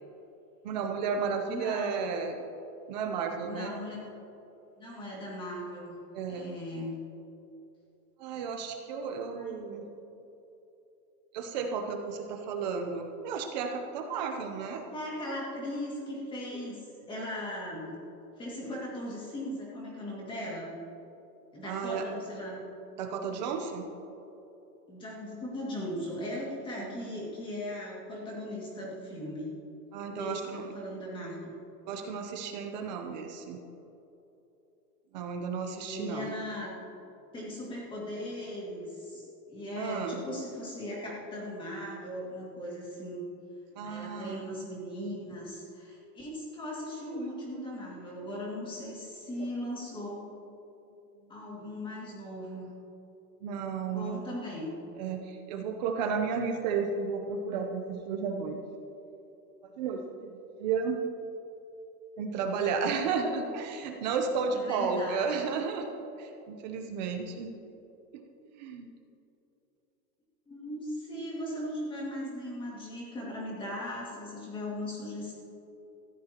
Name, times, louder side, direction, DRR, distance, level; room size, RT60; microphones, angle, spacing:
voice 1, 0.6-2.3 2.9-3.7 6.1-6.5 8.2-9.9 11.3-14.8 21.6-22.0 23.0-23.9 26.8-27.1 29.9-30.6 31.9-33.6 35.1-36.3 39.8-40.2 43.8-44.7 51.2-51.3 53.4-54.2 55.0-58.6 59.8-60.3 60.6-61.0 62.2-67.5 68.1-68.2 68.5-68.9, right 5 dB, 30° right, 4 dB, 0.7 m, -33 dB
voice 2, 1.5-2.0 3.4-4.1 4.7-5.9 6.3-6.9 9.4-9.6 14.9-16.8 17.1-17.9 18.4-20.7 21.5-22.6 24.9-29.5 30.1-31.5 35.8-36.7 37.3-43.2 43.8-50.3 51.3-52.7 53.9-54.8 64.5-65.4 70.5-75.3, left 1 dB, 10° left, -4 dB, 2.2 m, -38 dB
18.5 x 15.0 x 2.9 m, 2.9 s
supercardioid pair, 170°, 48 cm